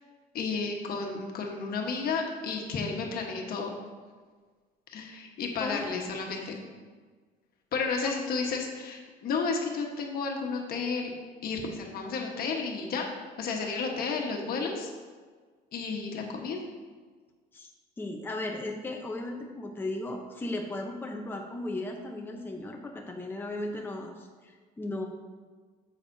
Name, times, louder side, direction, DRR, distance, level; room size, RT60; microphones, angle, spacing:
voice 1, 0.3-3.7 4.9-6.6 7.7-11.1 11.4-13.1 13.4-14.9 15.7-16.6, left 4 dB, 65° left, 1 dB, 1.4 m, -32 dB
voice 2, 5.6-5.9 6.3-6.5 8.0-8.1 17.5-17.7 18.0-25.1, left 2 dB, 10° left, 1 dB, 0.8 m, -36 dB
9.8 x 7.2 x 2.8 m, 1.5 s
cardioid pair, 110°, 17 cm